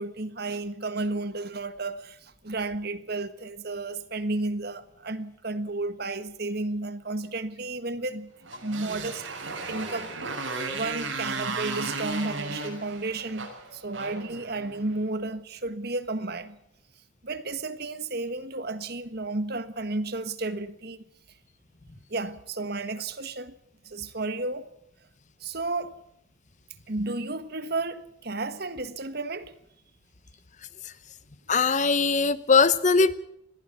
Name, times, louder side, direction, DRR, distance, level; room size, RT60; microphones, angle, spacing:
voice 1, 0.0-8.3 8.6-10.1 10.7-16.6 17.2-21.0 22.1-23.5 23.8-24.7 25.4-26.0 26.9-29.5, right 2 dB, 50° right, 1.5 m, -32 dB
Motorcycle, 8.4-14.9, right 3 dB, 70° right, 6.2 m, -35 dB
voice 2, 31.5-33.1, left 4 dB, 35° left, 0.9 m, -20 dB
21.0 x 15.5 x 8.4 m
head